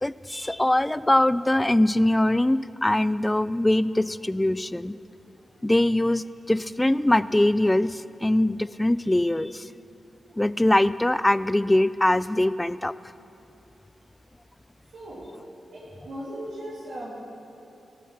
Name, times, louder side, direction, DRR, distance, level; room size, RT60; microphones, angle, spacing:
voice 1, 0.0-5.0 5.6-9.7 10.4-12.9, left 1 dB, 15° left, 17 dB, 0.3 m, -22 dB
voice 2, 14.9-15.2 15.7-17.1, right 1 dB, 80° right, -8 dB, 2.7 m, -37 dB
14.5 x 8.3 x 5.9 m, 2.9 s
supercardioid pair, 45°, 0 cm